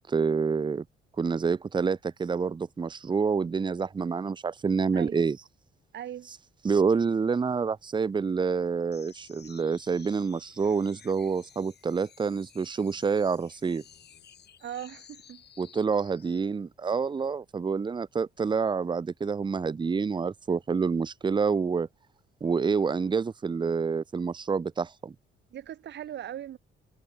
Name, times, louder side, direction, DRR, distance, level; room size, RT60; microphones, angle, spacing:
voice 1, 0.1-0.8 1.2-5.4 6.6-13.8 15.6-21.9 22.4-25.1, right 5 dB, 25° right, 0.6 m, -27 dB
voice 2, 5.9-6.3 14.6-15.4 25.5-26.6, right 11 dB, 65° right, 1.1 m, -39 dB
sound 1, 8.9-16.5, left 8 dB, 55° left, 6.5 m, -55 dB
cardioid pair, 90°, 20 cm